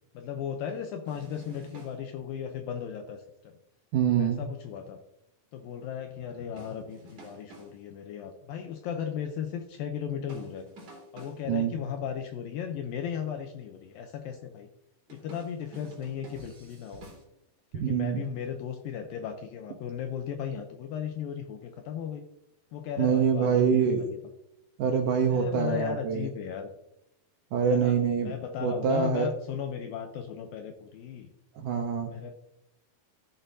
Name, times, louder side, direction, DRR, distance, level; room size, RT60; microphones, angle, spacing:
voice 1, 0.1-3.6 4.2-5.0 5.5-10.6 11.1-14.7 15.1-17.1 17.7-22.3 22.7-24.2 25.3-26.7 27.7-31.3 32.1-32.4, left 8 dB, 80° left, 6 dB, 2.1 m, -36 dB
sound 1, 1.1-2.0 6.6-7.8 10.3-11.5 15.1-17.2, right 1 dB, 40° right, 3.6 m, -49 dB
voice 2, 3.9-4.4 11.5-11.8 17.8-18.3 23.0-24.1 24.8-26.3 27.5-28.3 28.6-29.3 31.6-32.1, right 7 dB, 75° right, 2 dB, 2.0 m, -25 dB
14.5 x 6.6 x 2.7 m, 0.84 s
omnidirectional pair, 4.7 m